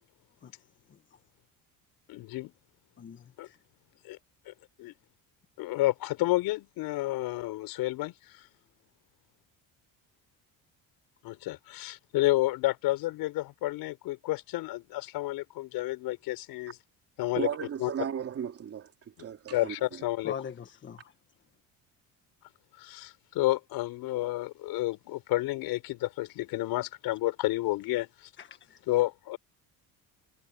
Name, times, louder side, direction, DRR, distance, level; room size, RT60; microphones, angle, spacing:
voice 1, 2.1-2.5 3.4-3.5 4.0-4.2 4.5-4.6 4.8-4.9 5.6-8.3 11.2-16.8 17.2-17.5 17.8-17.9 19.5-20.3 22.8-28.3 28.9-29.4, left 17 dB, 85° left, 6.7 m, -30 dB
voice 2, 3.0-3.6 20.2-21.1 28.4-28.8, left 7 dB, 30° left, 1.6 m, -42 dB
voice 3, 17.3-19.7, right 8 dB, 40° right, 2.9 m, -35 dB
cardioid pair, 145°, 36 cm